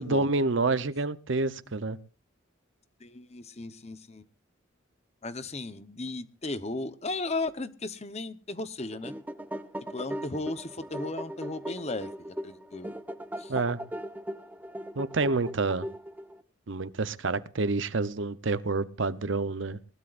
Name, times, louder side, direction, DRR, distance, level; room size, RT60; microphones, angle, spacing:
voice 1, 0.0-2.0 13.5-13.8 15.0-15.9 16.7-19.8, right 3 dB, 65° right, 0.8 m, -28 dB
voice 2, 3.0-4.3 5.2-9.1 9.9-12.9 13.4-13.5, left 2 dB, 30° left, 1.0 m, -36 dB
sound 1, 8.8-16.4, equal, 10° right, 0.8 m, -39 dB
20.5 x 19.5 x 2.6 m
head